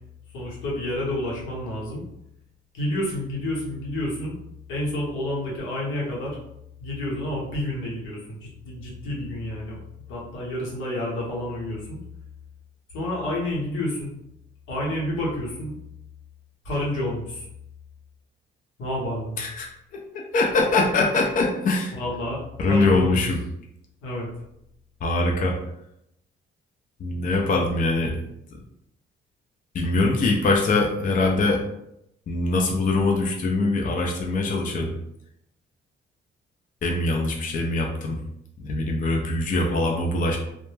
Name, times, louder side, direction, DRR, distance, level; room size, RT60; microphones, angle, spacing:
voice 1, 0.3-2.0 2.7-4.3 4.7-6.4 6.8-8.4 8.6-9.8 10.1-12.0 12.9-14.1 14.7-15.8 16.6-17.5 18.8-19.4 21.9-23.2 24.0-24.3, left 1 dB, 90° left, -4 dB, 1.0 m, -29 dB
voice 2, 19.4-19.7 20.1-21.9 22.6-23.4 25.0-25.6 27.0-28.2 29.7-31.6 32.3-34.9 36.8-38.2 38.6-40.4, left 2 dB, 40° left, 1 dB, 0.4 m, -23 dB
2.1 x 2.1 x 3.1 m, 0.80 s
cardioid pair, 90°, 20 cm